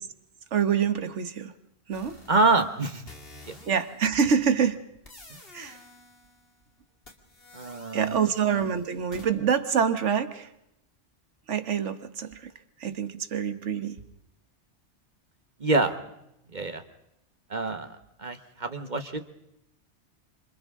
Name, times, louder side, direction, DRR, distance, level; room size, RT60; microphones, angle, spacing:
voice 1, 0.5-1.5 1.9-2.2 3.7-4.8 5.5-5.8 7.9-10.5 11.5-12.5 12.8-14.0, right 7 dB, 85° right, 10 dB, 1.5 m, -26 dB
sound 1, 1.9-4.3 5.0-6.6 7.0-9.3, left 2 dB, 55° left, 2.7 m, -51 dB
voice 2, 2.3-3.0 3.4-3.5 5.3-5.4 7.5-8.2 15.6-16.0 16.5-16.8 17.5-19.2, right 3 dB, 40° right, 8 dB, 1.4 m, -26 dB
29.0 x 26.0 x 3.7 m, 0.82 s
omnidirectional pair, 1.2 m